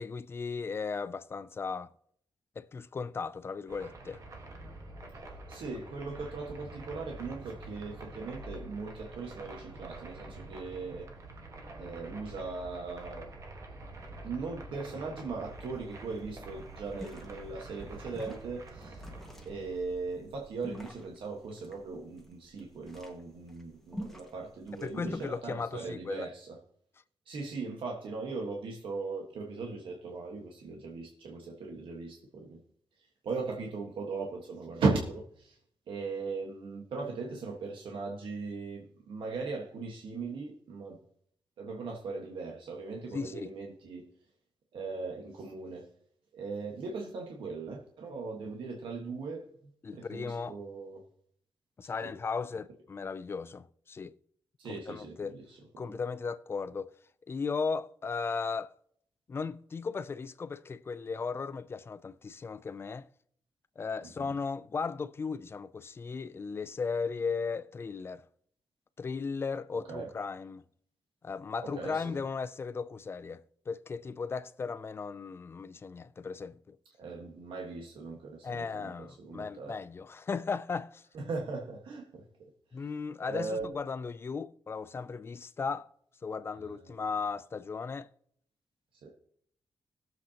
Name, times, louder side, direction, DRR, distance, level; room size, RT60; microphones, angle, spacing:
voice 1, 0.0-1.9 2.6-4.2 24.8-26.3 43.1-43.5 49.8-50.6 51.8-54.2 54.7-55.4 55.8-57.0 57.3-58.7 59.3-63.1 63.8-68.3 69.0-70.6 71.2-76.8 78.4-81.0 82.7-85.9 86.2-88.1, left 5 dB, 30° left, 0.3 m, -36 dB
sound 1, 3.7-21.0, right 2 dB, 40° right, 1.4 m, -47 dB
voice 2, 5.5-11.1 11.8-13.3 14.2-19.0 19.4-26.6 27.2-32.6 33.0-35.6 35.9-41.0 41.6-44.0 44.7-45.9 46.3-49.4 49.9-51.0 52.0-52.1 54.6-56.0 64.2-64.3 69.7-70.1 71.6-72.2 77.0-79.8 81.1-82.2 83.3-83.7 86.6-87.0 89.0-89.1, right 4 dB, 80° right, 1.5 m, -38 dB
sound 2, 15.3-15.4 15.7-15.8 16.1-25.4, equal, 5° left, 1.6 m, -47 dB
20.0 x 7.7 x 2.9 m
wide cardioid pair, 175°, 9 cm